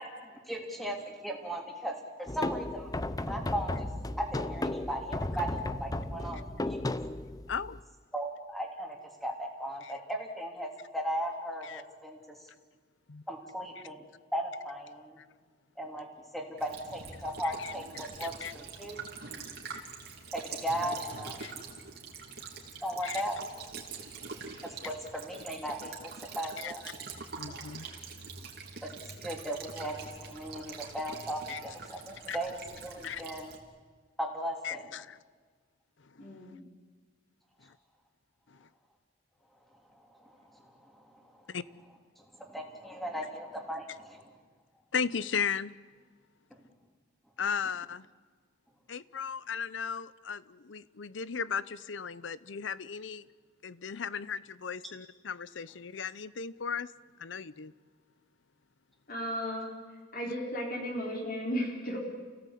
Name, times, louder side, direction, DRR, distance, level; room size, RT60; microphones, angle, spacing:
voice 1, 0.5-2.9 3.3-3.9 4.2-6.8 8.1-9.0 9.2-12.2 13.3-14.0 14.3-15.2 15.8-16.1 16.3-19.0 20.3-21.4 22.8-23.4 24.8-26.8 28.8-28.9 29.2-33.5 34.2-34.8 40.2-40.3 42.4-44.2, equal, ahead, 1 dB, 3.4 m, -37 dB
sound 1, 2.3-7.8, left 1 dB, 20° left, 0.7 m, -35 dB
voice 2, 7.5-7.8 9.8-9.9 11.6-11.8 13.1-13.2 13.8-13.9 15.2-15.3 17.6-17.7 18.2-18.5 19.7-19.8 21.4-21.5 23.0-23.2 26.6-26.9 27.4-27.9 31.5-31.6 32.3-32.4 33.0-33.2 34.6-35.2 36.2-36.3 38.6-38.7 41.5-41.7 44.9-45.7 47.4-48.1 48.9-53.3 53.6-56.9 57.2-57.7, left 6 dB, 70° left, 18 dB, 0.7 m, -36 dB
Child speech kid speaking / Bird vocalization bird call bird song / Stream, 16.6-33.6, right 5 dB, 55° right, 3.3 m, -44 dB
voice 3, 36.2-36.6 59.1-59.7 60.1-62.0, equal, 50° left, 0 dB, 4.3 m, -35 dB
29.0 x 17.0 x 8.5 m, 1.5 s
head